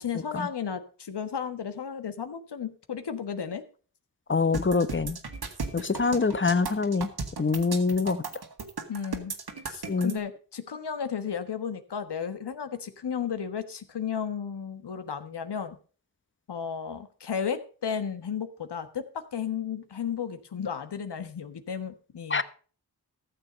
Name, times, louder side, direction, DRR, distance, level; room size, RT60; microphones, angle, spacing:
voice 1, 0.0-3.6 8.9-9.3 9.7-15.8 16.5-22.4, left 7 dB, 80° left, 1.4 m, -34 dB
voice 2, 4.3-5.2 5.7-7.1 7.4-8.2 9.9-10.2 22.3-22.4, left 4 dB, 30° left, 1.0 m, -25 dB
sound 1, 4.5-10.1, right 4 dB, 65° right, 1.9 m, -36 dB
14.0 x 7.0 x 5.2 m
cardioid pair, 50°, 40 cm